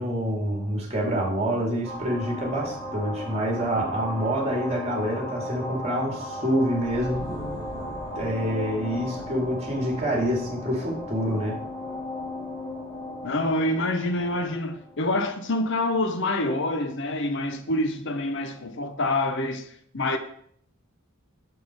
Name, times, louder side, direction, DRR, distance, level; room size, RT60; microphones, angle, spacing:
voice 1, 0.0-7.3 8.1-11.6, equal, 30° right, 2.3 m, -27 dB
sound 1, 1.8-16.0, left 1 dB, 15° left, 3.9 m, -36 dB
voice 2, 13.2-19.7 19.9-20.2, left 1 dB, 60° left, 0.9 m, -26 dB
6.9 x 6.3 x 4.9 m
head